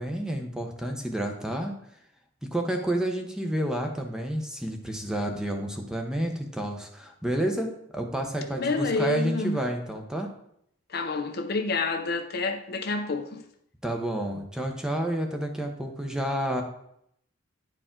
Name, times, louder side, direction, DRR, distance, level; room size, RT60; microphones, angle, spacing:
voice 1, 0.0-1.8 2.4-10.3 13.8-16.6, right 1 dB, 5° right, 0.8 m, -30 dB
voice 2, 8.5-9.6 10.9-13.4, left 3 dB, 50° left, 0.6 m, -28 dB
9.8 x 4.8 x 3.7 m
head